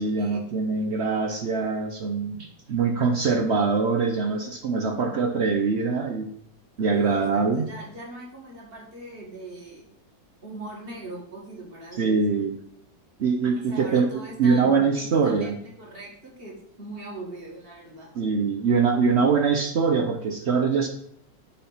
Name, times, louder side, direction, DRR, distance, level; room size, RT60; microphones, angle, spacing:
voice 1, 0.0-6.3 6.8-7.7 12.0-12.6 13.2-15.6 18.1-20.9, right 5 dB, 60° right, 4 dB, 0.7 m, -23 dB
voice 2, 6.9-9.9 10.4-12.4 13.4-18.1, right 2 dB, 30° right, -2 dB, 2.0 m, -41 dB
7.5 x 4.0 x 5.6 m, 0.69 s
omnidirectional pair, 1.9 m